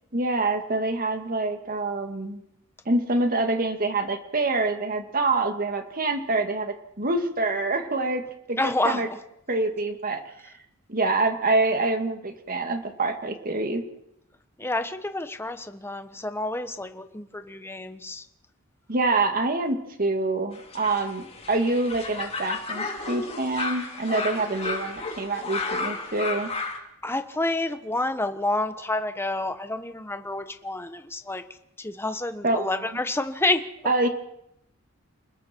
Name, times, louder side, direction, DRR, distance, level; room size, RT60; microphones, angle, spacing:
voice 1, 0.1-2.4 2.9-8.2 8.5-9.1 9.5-10.5 10.9-13.8 18.9-26.5 32.4-33.0 33.8-34.1, right 2 dB, 40° right, 6 dB, 2.3 m, -26 dB
voice 2, 8.6-9.0 14.6-18.2 27.0-31.4 31.8-33.6, left 2 dB, 10° left, 8 dB, 1.2 m, -29 dB
sound 1, 20.5-26.8, left 3 dB, 30° left, 3.2 m, -33 dB
30.0 x 20.5 x 4.6 m, 0.80 s
head